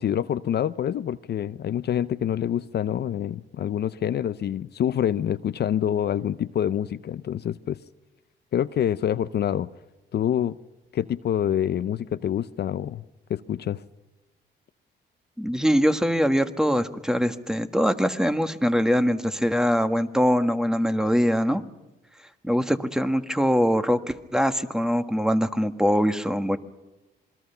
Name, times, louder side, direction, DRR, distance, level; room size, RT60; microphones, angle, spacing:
voice 1, 0.0-7.8 8.5-9.7 10.1-10.6 10.9-13.0 13.3-13.8, left 10 dB, 55° left, 13 dB, 0.7 m, -26 dB
voice 2, 15.4-21.6 22.4-26.6, equal, 5° right, 9 dB, 1.5 m, -23 dB
27.0 x 21.5 x 5.7 m, 1.1 s
cardioid pair, 90°, 20 cm